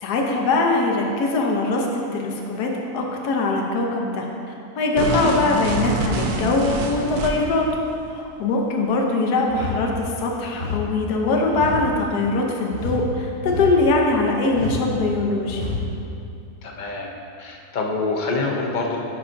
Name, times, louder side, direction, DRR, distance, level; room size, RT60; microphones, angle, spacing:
voice 1, 0.0-4.3 4.8-7.7 8.1-15.7, left 3 dB, 85° left, 0 dB, 1.3 m, -22 dB
sound 1, 5.0-7.6, right 3 dB, 75° right, 1.1 m, -26 dB
voice 2, 5.1-5.5 16.6-17.1 17.4-19.0, left 3 dB, 60° left, -1 dB, 0.5 m, -26 dB
sound 2, 9.5-9.9 10.5-10.9 11.5-11.9 12.7-13.1 13.4-13.9 14.5-14.9 15.5-15.9, left 3 dB, 45° left, 1.1 m, -29 dB
9.1 x 5.5 x 2.5 m, 2.7 s
omnidirectional pair, 1.6 m